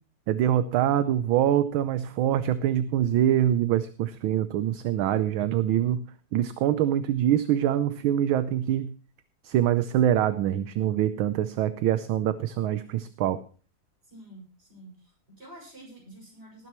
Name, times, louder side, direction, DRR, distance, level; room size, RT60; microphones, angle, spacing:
voice 1, 0.3-6.0 6.3-8.9 9.4-13.4, right 11 dB, 75° right, 12 dB, 1.5 m, -24 dB
voice 2, 14.1-16.7, right 1 dB, 30° right, 0 dB, 6.7 m, -48 dB
19.0 x 10.5 x 3.0 m, 0.39 s
omnidirectional pair, 2.3 m